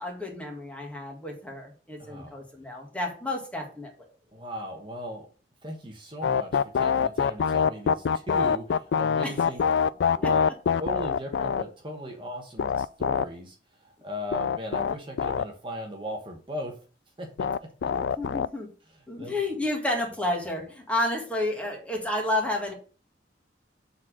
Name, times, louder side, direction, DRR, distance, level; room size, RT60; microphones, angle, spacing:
voice 1, 0.0-3.9 9.2-9.4 10.2-10.3 17.9-18.7 19.1-22.7, left 1 dB, 10° left, 0 dB, 2.0 m, -31 dB
voice 2, 2.0-2.4 4.3-5.3 5.6-9.6 10.0-10.5 10.8-16.7 17.2-17.7 19.2-19.3, equal, 30° right, 1 dB, 1.2 m, -38 dB
sound 1, 6.2-11.6 12.6-13.2 14.3-15.4 17.4-18.5, left 7 dB, 75° left, 0.3 m, -24 dB
7.4 x 4.1 x 6.3 m, 0.39 s
head